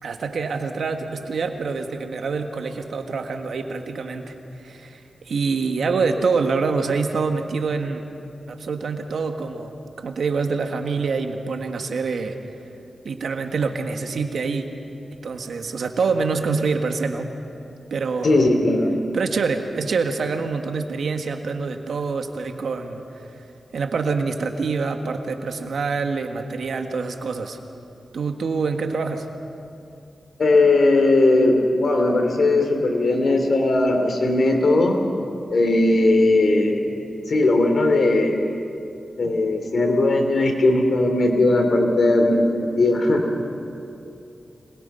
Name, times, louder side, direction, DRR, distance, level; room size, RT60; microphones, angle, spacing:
voice 1, 0.0-5.0 5.2-8.0 8.5-12.3 13.0-14.7 15.1-17.3 17.9-18.5 19.1-23.0 23.7-27.6 28.1-29.3, right 4 dB, 80° right, 5 dB, 1.6 m, -26 dB
voice 2, 18.2-18.9 30.4-35.0 35.5-36.8 37.3-38.3 39.2-43.3, left 2 dB, 65° left, 4 dB, 3.2 m, -18 dB
26.0 x 21.0 x 5.7 m, 2.7 s
cardioid pair, 55°, 0 cm